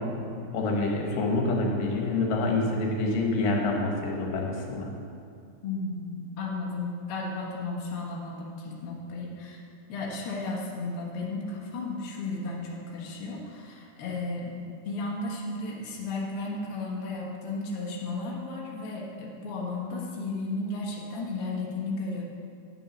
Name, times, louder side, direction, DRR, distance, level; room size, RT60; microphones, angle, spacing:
voice 1, 0.0-4.9, left 2 dB, 65° left, 0 dB, 2.5 m, -27 dB
voice 2, 5.6-9.6 9.9-22.2, left 3 dB, 90° left, -3 dB, 1.1 m, -34 dB
10.0 x 7.2 x 6.0 m, 2.4 s
omnidirectional pair, 4.7 m